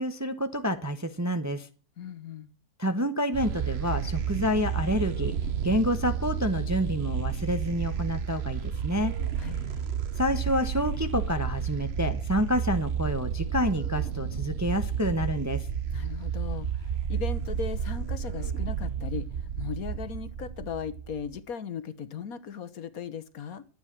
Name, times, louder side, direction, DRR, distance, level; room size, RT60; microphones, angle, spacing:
voice 1, 0.0-1.7 2.8-5.3 5.6-9.1 10.2-15.7, equal, 15° right, 8 dB, 0.8 m, -28 dB
voice 2, 2.0-2.5 9.4-9.6 15.9-23.6, left 6 dB, 65° left, 12 dB, 1.5 m, -37 dB
sound 1, 3.3-21.4, right 7 dB, 50° right, 1.0 m, -31 dB
13.0 x 9.1 x 7.4 m, 0.39 s
omnidirectional pair, 1.7 m